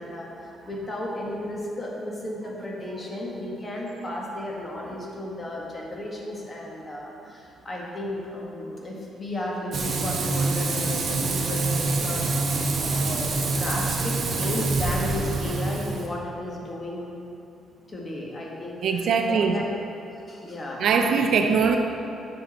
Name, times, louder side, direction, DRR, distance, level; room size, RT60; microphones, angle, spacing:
voice 1, 0.0-12.5 12.8-17.0 17.9-19.7 20.3-20.8, left 1 dB, 30° left, -3 dB, 1.7 m, -34 dB
Frying (food), 9.7-16.1, right 3 dB, 55° right, 1.2 m, -26 dB
voice 2, 18.8-19.6 20.8-21.8, right 5 dB, 70° right, 5 dB, 0.5 m, -21 dB
8.6 x 6.4 x 4.2 m, 2.7 s
cardioid pair, 90°, 0 cm